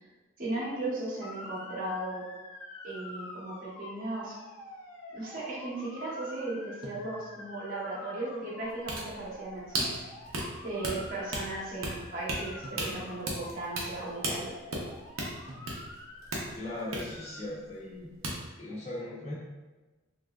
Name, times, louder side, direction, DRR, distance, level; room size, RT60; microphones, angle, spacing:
voice 1, 0.4-2.2 2.8-4.3 5.1-9.9 10.6-14.5, right 2 dB, 45° right, -6 dB, 0.9 m, -36 dB
Motor vehicle (road) / Siren, 1.2-17.4, left 2 dB, 75° left, 0.5 m, -47 dB
sound 1, 6.8-7.6 9.7-10.5 12.6-13.4 15.5-16.2, equal, 25° right, 0.5 m, -49 dB
sound 2, 8.6-18.0 18.2-18.4, right 2 dB, 80° right, 0.7 m, -35 dB
voice 2, 16.5-18.1 18.6-19.3, left 1 dB, 30° left, -7 dB, 0.7 m, -38 dB
3.2 x 2.7 x 2.4 m, 1.2 s
head